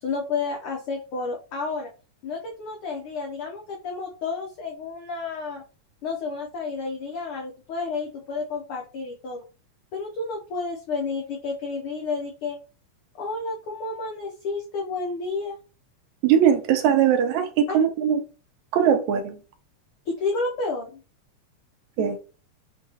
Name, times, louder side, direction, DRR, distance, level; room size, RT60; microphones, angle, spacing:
voice 1, 0.0-1.9 2.2-5.6 6.0-9.4 9.9-12.6 13.1-15.6 17.7-17.8 20.1-21.0, left 4 dB, 90° left, 1 dB, 1.2 m, -31 dB
voice 2, 16.2-18.2 18.7-19.4 22.0-22.2, right 8 dB, 80° right, 7 dB, 1.9 m, -20 dB
6.3 x 2.7 x 2.8 m, 0.35 s
omnidirectional pair, 3.3 m